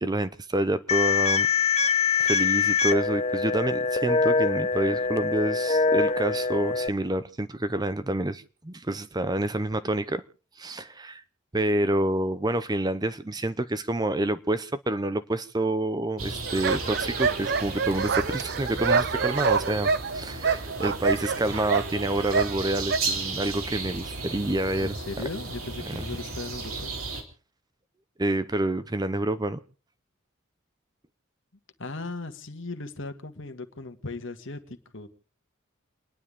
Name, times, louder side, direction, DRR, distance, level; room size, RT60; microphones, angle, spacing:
voice 1, 0.0-1.5 2.2-10.2 10.6-11.2 11.5-25.0 25.9-26.0 28.2-29.6, right 1 dB, 20° right, 0.6 m, -28 dB
sound 1, 0.9-6.9, left 5 dB, 30° left, 0.8 m, -24 dB
sound 2, 16.2-27.2, right 3 dB, 85° right, 3.0 m, -35 dB
sound 3, 16.5-23.0, right 5 dB, 50° right, 0.7 m, -27 dB
voice 2, 24.8-27.0 31.8-35.1, left 3 dB, 60° left, 1.6 m, -37 dB
29.5 x 10.5 x 3.7 m
head